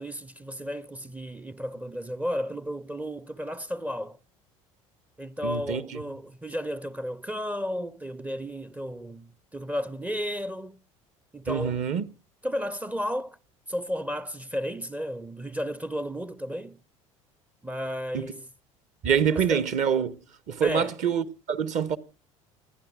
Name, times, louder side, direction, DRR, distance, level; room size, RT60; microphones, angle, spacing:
voice 1, 0.0-4.2 5.2-10.8 11.3-11.8 12.4-13.4 13.7-16.8 17.6-18.5 19.3-19.6 20.6-20.9, equal, 10° right, 0.6 m, -33 dB
voice 2, 5.4-6.0 11.5-12.1 18.1-18.3 19.0-20.2 20.5-22.0, right 7 dB, 45° right, 1.1 m, -26 dB
27.5 x 10.5 x 2.4 m
figure-of-eight pair, 65°, 18 cm